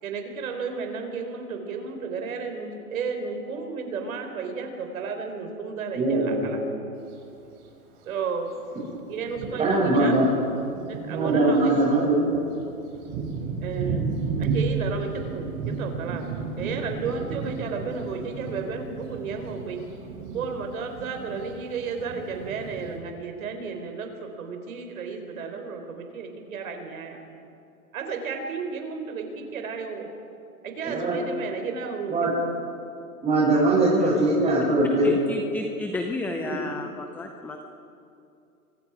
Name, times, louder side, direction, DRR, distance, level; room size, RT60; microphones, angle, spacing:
voice 1, 0.0-6.6 8.1-8.5 9.1-10.2 10.9-11.7 13.6-16.3 16.6-19.9 20.3-27.2 27.9-30.1 30.6-32.6 34.1-34.3, right 5 dB, 65° right, 5 dB, 4.4 m, -33 dB
voice 2, 5.9-6.5 9.6-10.3 11.1-12.3 30.8-31.2 32.1-32.3 33.2-35.1 36.4-36.5, right 2 dB, 15° right, -8 dB, 7.8 m, -21 dB
Thunder, 7.0-7.1 8.1-8.2 8.7-8.8 9.2-23.0, right 4 dB, 35° right, 6.4 m, -33 dB
voice 3, 35.0-37.6, left 2 dB, 5° left, 4 dB, 0.6 m, -32 dB
29.0 x 24.5 x 4.9 m, 2.6 s
hypercardioid pair, 135°, 45 cm